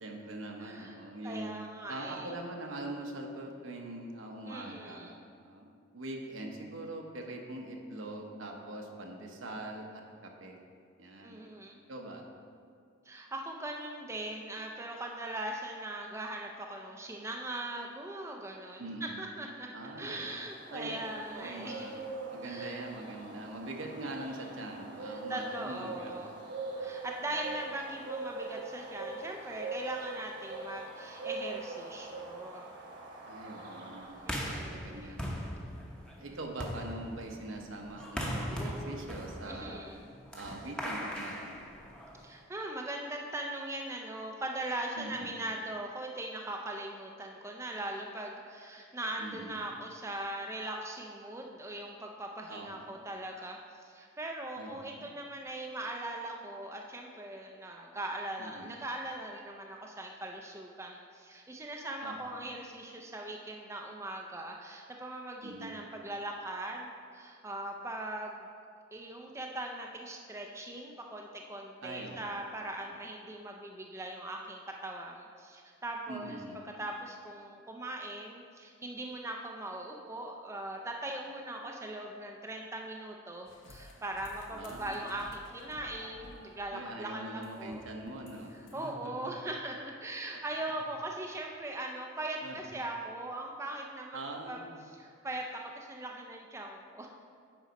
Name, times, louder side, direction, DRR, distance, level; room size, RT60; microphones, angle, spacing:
voice 1, 0.0-1.5 1.9-5.1 5.4-10.6 11.0-11.5 11.9-12.3 18.8-19.2 19.7-20.3 20.7-21.0 21.3-21.9 22.3-26.1 33.3-35.4 36.2-39.9 40.3-41.7 44.9-45.4 49.2-49.6 52.5-52.9 54.6-55.2 58.4-58.8 62.0-62.2 65.4-65.8 71.8-72.3 72.9-73.0 76.1-76.7 84.5-85.0 86.7-89.5 92.4-92.8 94.1-94.8, right 1 dB, 75° right, 1 dB, 1.0 m, -43 dB
voice 2, 0.6-1.0 1.2-2.3 4.5-5.1 11.2-11.8 13.0-19.7 20.0-22.1 22.4-22.8 25.0-26.3 26.8-32.7 34.3-35.2 39.5-40.1 42.2-68.5 68.9-76.4 76.6-87.8 88.5-94.6 94.8-97.1, right 1 dB, 15° right, 1 dB, 0.4 m, -40 dB
sound 1, 20.0-34.6, right 3 dB, 60° right, 1.3 m, -43 dB
sound 2, 34.2-42.3, equal, 5° left, 0.8 m, -39 dB
sound 3, 83.5-88.9, left 2 dB, 70° left, 0.7 m, -53 dB
9.0 x 4.0 x 5.2 m, 2.2 s
head